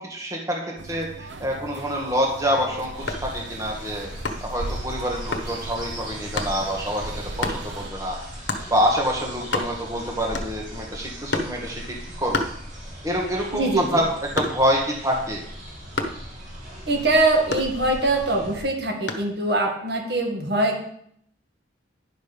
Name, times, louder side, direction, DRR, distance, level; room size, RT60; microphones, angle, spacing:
voice 1, 0.0-4.1 4.4-7.1 7.4-8.2 8.7-11.8 12.2-12.4 13.0-14.1 14.3-15.4, equal, 15° right, -1 dB, 1.7 m, -26 dB
sound 1, 0.8-7.9, right 2 dB, 75° right, 0.8 m, -38 dB
sound 2, 2.9-18.6, equal, 45° right, 4.3 m, -38 dB
sound 3, 3.1-3.4 4.2-4.6 5.3-5.5 6.4-6.6 7.4-7.7 8.5-8.7 9.1-9.2 9.4-10.0 10.3-10.8 11.3-11.6 12.3-13.1 13.5-14.8 16.0-16.3 17.5-18.2 19.1-19.4, left 3 dB, 70° left, 1.2 m, -29 dB
voice 2, 13.5-14.1 16.9-20.8, right 2 dB, 60° right, 1 dB, 1.9 m, -22 dB
10.5 x 6.5 x 5.2 m, 0.68 s
head